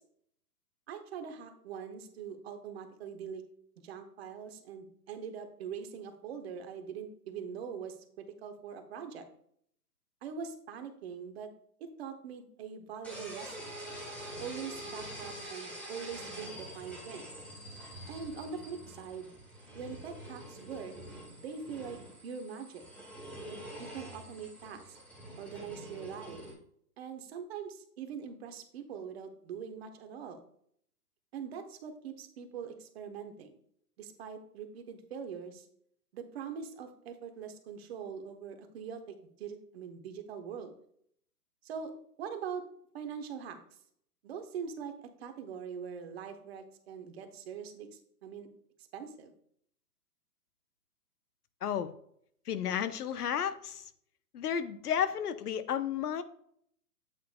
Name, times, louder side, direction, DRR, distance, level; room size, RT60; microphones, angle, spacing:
voice 1, 0.9-3.4 3.8-9.2 10.2-11.5 11.8-13.8 14.4-17.3 18.1-19.3 19.7-20.9 21.4-22.9 23.5-24.9 25.4-26.4 27.0-30.4 31.3-33.6 34.0-35.7 36.1-40.7 41.6-41.9 42.2-42.6 42.9-43.6 44.2-48.5 48.9-49.3, right 6 dB, 40° right, 7 dB, 1.1 m, -43 dB
sound 1, 13.0-26.5, right 1 dB, 5° left, 1.8 m, -46 dB
voice 2, 51.6-51.9 52.5-53.9 54.3-56.2, left 8 dB, 75° left, 12 dB, 0.9 m, -32 dB
8.4 x 7.6 x 2.3 m, 0.67 s
hypercardioid pair, 140°, 47 cm